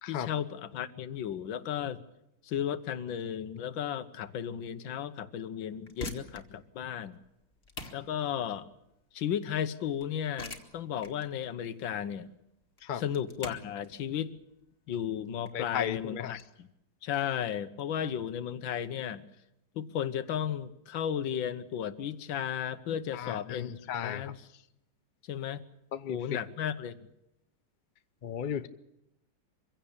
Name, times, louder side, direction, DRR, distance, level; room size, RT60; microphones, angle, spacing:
voice 1, 0.1-2.0 2.4-7.2 7.9-8.7 9.1-12.3 12.9-14.3 14.9-16.7 17.0-19.3 19.7-23.7 24.0-24.4 25.2-25.6 26.1-27.0, left 9 dB, 70° left, 13 dB, 1.7 m, -34 dB
sound 1, 5.8-16.5, left 2 dB, 30° left, 2.0 m, -46 dB
voice 2, 15.5-16.4 23.1-24.3 25.9-26.4 28.2-28.7, left 8 dB, 85° left, 12 dB, 0.4 m, -35 dB
24.0 x 16.5 x 8.6 m, 0.84 s
omnidirectional pair, 2.3 m